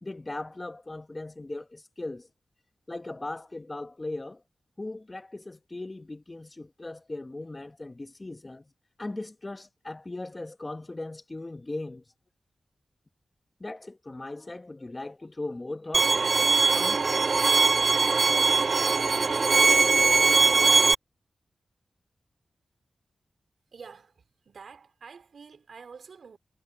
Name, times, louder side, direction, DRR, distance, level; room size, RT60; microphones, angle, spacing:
voice 1, 0.0-2.3 2.9-4.4 4.8-8.7 9.0-12.0 13.6-16.3 16.7-17.5, left 2 dB, 30° left, 1.3 m, -38 dB
Bowed string instrument, 15.9-20.9, right 4 dB, 60° right, 0.4 m, -21 dB
voice 2, 23.7-26.4, right 5 dB, 75° right, 4.4 m, -48 dB
cardioid pair, 40°, 0 cm